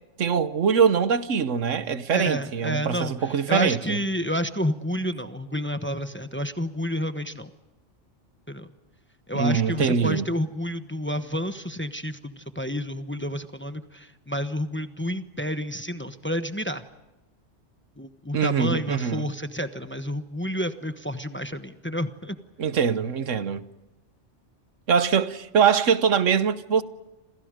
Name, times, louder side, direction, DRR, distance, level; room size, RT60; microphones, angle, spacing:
voice 1, 0.2-4.0 9.3-10.3 18.3-19.3 22.6-23.7 24.9-26.8, right 7 dB, 85° right, 1.4 m, -23 dB
voice 2, 2.1-7.5 8.5-8.7 9.3-16.8 18.0-22.4, equal, 10° left, 1.0 m, -30 dB
29.5 x 27.0 x 5.1 m
omnidirectional pair, 1.3 m